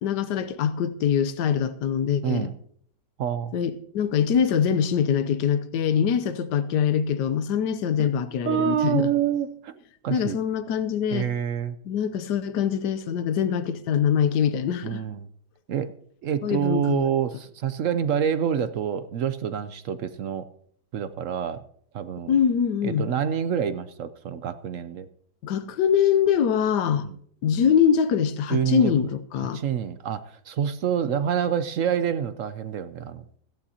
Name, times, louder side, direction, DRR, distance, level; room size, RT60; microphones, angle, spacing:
voice 1, 0.0-2.5 3.5-9.1 10.1-11.3 11.9-15.0 16.4-17.1 22.3-23.1 25.4-27.1 27.4-29.6, left 8 dB, 80° left, 1.4 m, -23 dB
voice 2, 2.2-2.5 3.2-3.5 8.0-8.1 8.4-9.7 10.0-10.4 11.1-11.8 14.8-15.3 15.7-15.9 16.2-20.5 20.9-21.6 21.9-22.4 22.8-25.1 27.0-27.1 28.5-28.9 29.4-33.2, right 8 dB, 65° right, 0.8 m, -27 dB
17.0 x 14.5 x 2.8 m
omnidirectional pair, 1.8 m